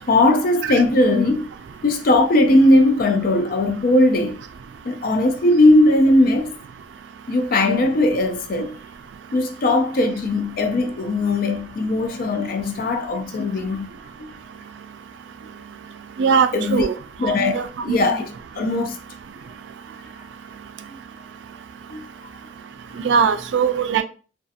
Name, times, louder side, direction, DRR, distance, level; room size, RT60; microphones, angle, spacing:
voice 1, 0.1-1.5 1.8-4.4 4.8-6.5 7.3-8.8 9.3-13.9 14.2-14.3 16.5-16.9 17.2-19.0 20.9-21.0 21.9-22.1 23.4-23.5, left 2 dB, 55° left, 0.4 m, -19 dB
voice 2, 16.2-16.9 17.2-18.1 23.0-24.0, right 6 dB, 90° right, 0.3 m, -20 dB
2.6 x 2.4 x 2.4 m
head